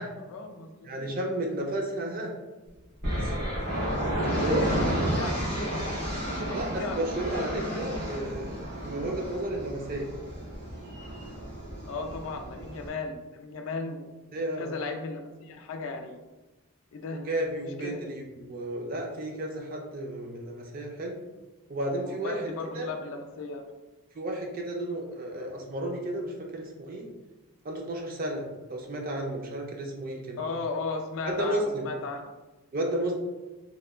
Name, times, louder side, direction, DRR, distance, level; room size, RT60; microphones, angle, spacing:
voice 1, 0.2-1.1 4.2-7.3 11.9-14.2 14.6-16.2 16.9-17.2 17.6-18.0 22.0-23.6 30.4-32.3, left 3 dB, 65° left, 4 dB, 0.3 m, -36 dB
voice 2, 0.8-2.3 3.2-3.3 4.4-4.6 6.4-10.1 14.3-14.7 17.1-21.2 21.7-22.4 22.8-22.9 24.1-27.1 27.6-28.4 28.7-30.4 31.2-31.8 32.7-33.1, right 1 dB, 40° right, 1 dB, 0.4 m, -32 dB
sound 1, 3.0-12.9, equal, 85° right, 1.1 m, -32 dB
2.9 x 2.1 x 2.3 m, 1.1 s
head